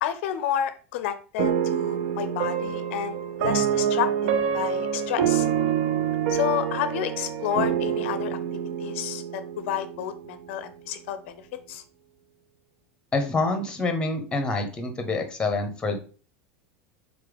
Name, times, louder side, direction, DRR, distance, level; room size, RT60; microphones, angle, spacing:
voice 1, 0.0-5.5 6.3-8.4 8.8-11.4 11.7-11.8, left 10 dB, 75° left, 11 dB, 0.4 m, -30 dB
sound 1, 1.4-10.6, right 8 dB, 70° right, 0.5 m, -27 dB
voice 2, 13.1-16.0, left 3 dB, 15° left, 6 dB, 1.0 m, -26 dB
3.9 x 3.3 x 3.4 m, 0.38 s
supercardioid pair, 115°, 7 cm